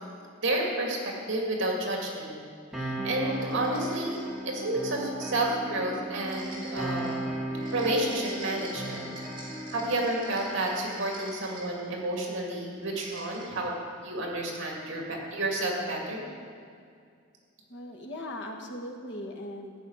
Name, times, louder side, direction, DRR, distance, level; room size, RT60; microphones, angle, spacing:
voice 1, 0.4-2.3 2.8-7.2 7.7-9.1 9.7-13.7 14.0-16.2, right 1 dB, 65° right, -1 dB, 2.3 m, -30 dB
sound 1, 2.7-10.8, right 1 dB, ahead, 2.2 m, -36 dB
sound 2, 3.2-4.5 6.2-12.1 12.8-13.7, right 1 dB, 25° right, 3.7 m, -45 dB
voice 2, 17.7-19.9, left 1 dB, 60° left, 1 dB, 1.7 m, -39 dB
14.5 x 6.4 x 9.1 m, 2.3 s
head